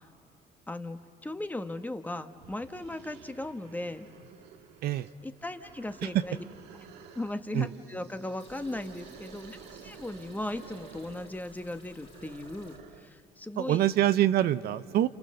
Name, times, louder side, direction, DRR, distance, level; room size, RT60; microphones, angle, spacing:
voice 1, 0.7-4.1 5.2-6.4 7.1-13.8, left 1 dB, 10° left, 8 dB, 1.2 m, -37 dB
sound 1, 2.4-13.2, right 8 dB, 85° right, 1.5 m, -52 dB
sound 2, 8.4-12.8, left 4 dB, 30° left, 3.5 m, -57 dB
voice 2, 13.6-15.1, right 12 dB, 70° right, 13 dB, 0.7 m, -25 dB
30.0 x 29.5 x 6.5 m, 2.2 s
cardioid pair, 110°, 17 cm